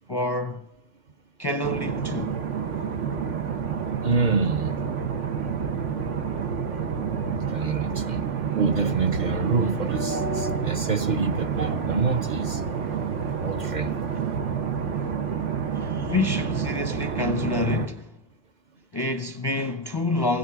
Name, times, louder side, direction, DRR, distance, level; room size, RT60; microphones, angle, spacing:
voice 1, 0.1-0.6 1.4-2.4 15.7-18.1 18.9-20.4, left 2 dB, 30° left, 0.5 m, -27 dB
sound 1, 1.6-17.9, right 7 dB, 90° right, 1.3 m, -29 dB
voice 2, 4.0-4.7 7.5-8.2 8.6-12.6 13.4-13.9, right 4 dB, 45° right, 0.8 m, -26 dB
sound 2, 8.7-14.4, equal, 75° right, 2.2 m, -38 dB
16.5 x 15.5 x 4.7 m
omnidirectional pair, 1.2 m